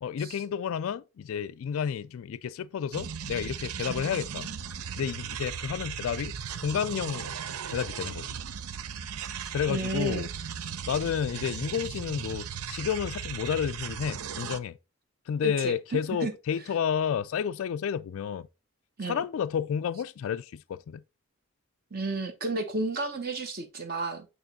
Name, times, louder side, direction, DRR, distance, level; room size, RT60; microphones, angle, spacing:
voice 1, 0.0-4.5 5.0-7.4 7.7-8.4 9.5-10.3 10.9-14.8 15.3-18.5 19.0-21.0, left 7 dB, 70° left, 0.3 m, -31 dB
sound 1, 2.9-14.6, right 7 dB, 85° right, 0.6 m, -37 dB
voice 2, 9.4-10.3 15.4-16.3 19.0-19.2 21.9-24.3, right 2 dB, 40° right, 0.9 m, -32 dB
8.8 x 3.0 x 4.0 m
head